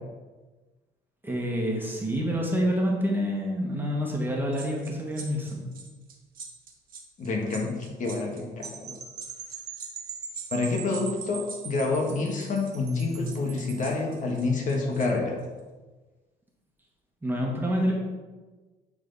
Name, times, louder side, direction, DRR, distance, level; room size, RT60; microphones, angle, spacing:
voice 1, 1.2-5.6 17.2-17.9, equal, 10° right, -2 dB, 1.7 m, -27 dB
sound 1, 4.5-15.1 15.4-15.6, right 5 dB, 60° right, 1.7 m, -46 dB
voice 2, 7.2-9.0 10.5-15.4, left 3 dB, 50° left, 0 dB, 1.6 m, -28 dB
sound 2, 8.6-13.9, right 6 dB, 45° right, 1.0 m, -41 dB
10.5 x 4.0 x 4.1 m, 1.3 s
cardioid pair, 110°, 17 cm